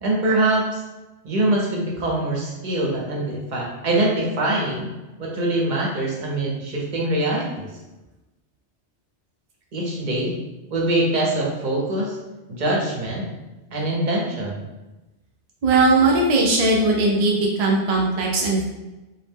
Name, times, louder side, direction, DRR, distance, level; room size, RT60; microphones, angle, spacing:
voice 1, 0.0-0.8 1.2-4.9 5.2-7.7 9.7-10.3 10.7-12.2 12.5-13.3 13.7-14.6, right 1 dB, 50° right, -3 dB, 0.7 m, -23 dB
voice 2, 15.6-18.7, right 2 dB, 70° right, -1 dB, 0.3 m, -19 dB
2.6 x 2.1 x 3.3 m, 1.1 s
omnidirectional pair, 1.2 m